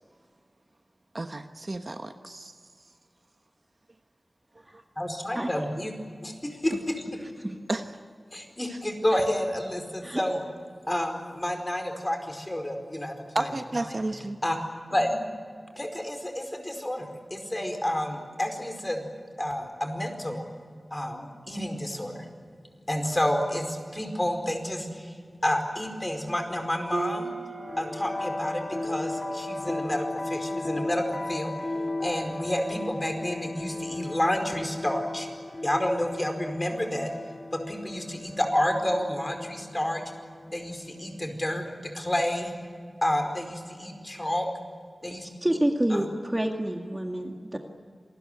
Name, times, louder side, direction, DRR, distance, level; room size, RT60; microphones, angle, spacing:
voice 1, 1.1-2.5 7.7-7.8 8.7-8.8 13.3-14.4, right 2 dB, 45° right, 7 dB, 1.2 m, -32 dB
voice 2, 5.0-5.9 6.2-6.9 8.3-10.4 10.9-13.5 13.9-14.0 14.4-14.6 14.9-15.3 15.8-19.0 19.4-20.4 20.9-22.3 22.9-25.2 25.4-27.3 27.8-31.5 32.0-35.3 35.6-37.1 37.5-40.0 40.5-42.5 43.0-44.5 45.0-45.3 45.9-46.0 47.2-47.6, left 1 dB, 20° left, 5 dB, 4.8 m, -30 dB
sound 1, 26.9-30.7, right 3 dB, 75° right, 3.8 m, -39 dB
sound 2, 27.5-41.6, left 2 dB, 40° left, 2.5 m, -36 dB
voice 3, 45.1-47.6, right 1 dB, 20° right, 3 dB, 2.0 m, -28 dB
27.5 x 20.0 x 9.4 m, 2.1 s
wide cardioid pair, 80°, 0 cm